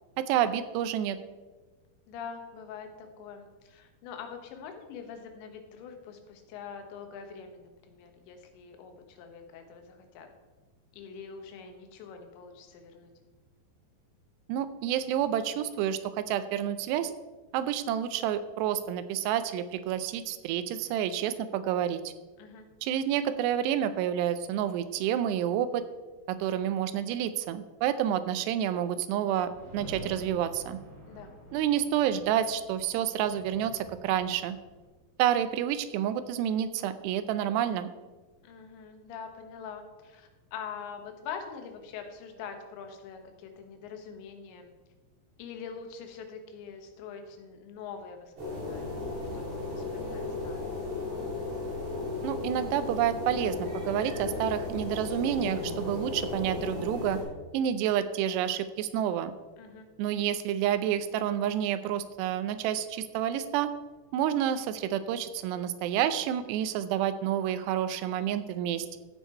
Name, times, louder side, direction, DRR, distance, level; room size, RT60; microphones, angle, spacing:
voice 1, 0.2-1.2 14.5-17.1 17.5-22.0 22.8-25.8 26.3-30.8 31.5-34.6 35.2-37.9 52.2-57.2 57.5-59.3 60.0-63.7 64.1-69.0, right 10 dB, 85° right, 12 dB, 2.6 m, -29 dB
voice 2, 2.1-10.3 10.9-13.1 22.4-22.7 31.1-31.3 38.4-44.7 45.4-50.8 59.6-59.9, left 6 dB, 85° left, 5 dB, 3.4 m, -44 dB
sound 1, 29.4-34.9, right 1 dB, 45° right, 5.0 m, -48 dB
sound 2, 48.4-57.2, left 3 dB, 65° right, 5.6 m, -35 dB
14.5 x 6.5 x 4.4 m, 1.3 s
omnidirectional pair, 5.0 m